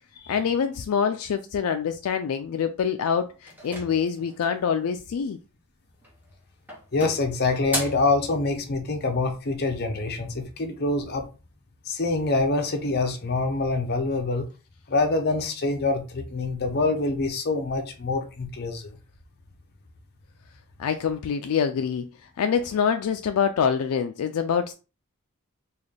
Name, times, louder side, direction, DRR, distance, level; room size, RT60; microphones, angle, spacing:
voice 1, 0.3-5.4 20.8-22.1 22.4-24.7, left 7 dB, 75° left, 0.3 m, -25 dB
sound 1, 3.5-4.7 5.9-6.3 6.7-8.1, equal, 10° right, 0.9 m, -35 dB
voice 2, 6.9-11.2 11.9-14.5 14.9-19.0, left 3 dB, 45° left, 0.7 m, -25 dB
4.0 x 2.4 x 3.3 m
head